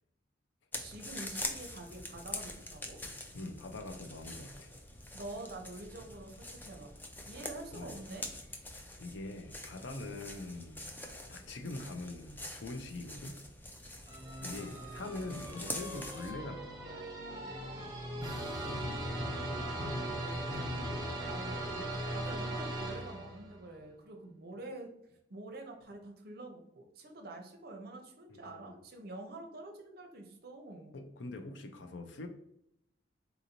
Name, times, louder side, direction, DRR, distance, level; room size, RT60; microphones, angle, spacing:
sound 1, 0.7-16.3, left 1 dB, 10° left, 0.4 m, -45 dB
voice 1, 0.8-3.0 5.1-6.9 7.2-8.3 19.6-24.9 25.3-31.0, right 2 dB, 55° right, 3 dB, 0.6 m, -47 dB
voice 2, 3.3-4.7 7.7-8.0 9.0-10.9 11.3-13.4 14.4-16.9 28.3-28.7 30.9-32.3, left 2 dB, 80° left, 7 dB, 0.5 m, -43 dB
sound 2, 14.1-23.6, right 1 dB, 20° right, 0.8 m, -39 dB
3.9 x 2.6 x 2.9 m, 0.79 s
head